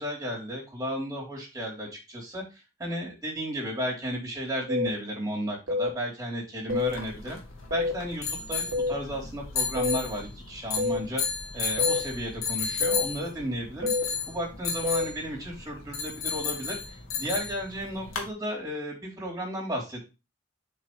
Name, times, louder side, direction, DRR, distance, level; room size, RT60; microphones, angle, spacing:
voice 1, 0.0-2.4 2.8-7.4 7.7-11.2 11.5-13.9 14.3-16.8 17.2-20.1, equal, 20° right, -3 dB, 3.4 m, -33 dB
sound 1, 4.7-4.9 5.7-5.9 6.7-6.9 7.7-7.9 8.7-8.9 9.7-10.0 10.8-11.0 11.8-12.0 12.8-13.0 13.8-14.0 14.8-15.0, left 3 dB, 90° right, 2.2 m, -26 dB
sound 2, 6.7-18.3, left 6 dB, 85° left, 2.1 m, -33 dB
7.5 x 5.3 x 3.1 m, 0.27 s
head